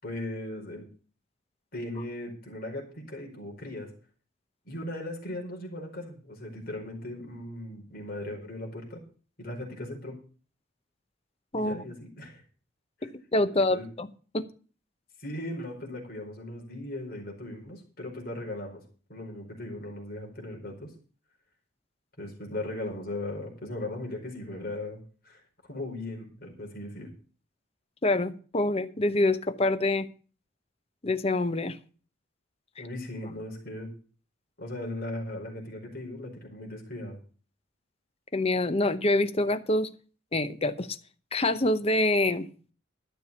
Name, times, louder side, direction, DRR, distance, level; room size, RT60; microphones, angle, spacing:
voice 1, 0.0-0.9 1.7-3.9 4.6-9.0 9.4-10.2 11.6-12.4 13.0-13.1 13.7-13.9 15.2-18.8 19.1-20.9 22.2-25.0 25.2-27.1 32.8-33.9 34.6-37.1, left 1 dB, 50° left, 1 dB, 4.7 m, -38 dB
voice 2, 13.3-14.1 14.3-14.4 28.0-30.1 31.0-31.8 38.3-39.9 40.3-41.0 41.3-42.5, left 2 dB, 30° left, 11 dB, 0.8 m, -26 dB
13.0 x 6.8 x 6.9 m, 0.39 s
head